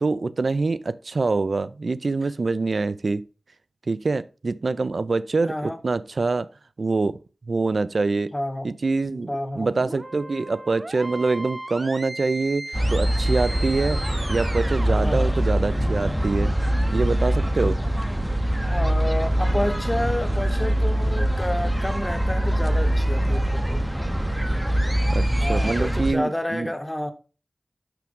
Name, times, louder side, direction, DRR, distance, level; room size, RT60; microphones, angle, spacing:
voice 1, 0.0-3.2 3.9-6.5 6.8-7.2 7.5-8.3 8.6-9.3 9.6-14.0 14.3-16.5 16.9-17.8 25.0-26.7, right 3 dB, 75° right, 0.4 m, -25 dB
voice 2, 5.4-5.8 8.3-8.7 9.3-9.7 15.0-15.3 18.7-23.8 25.4-27.1, left 1 dB, 20° left, 1.0 m, -29 dB
sound 1, 9.0-16.2, right 1 dB, 40° right, 0.8 m, -37 dB
sound 2, 12.7-26.1, right 1 dB, 5° right, 0.6 m, -23 dB
6.0 x 5.9 x 3.6 m
wide cardioid pair, 45°, 0 cm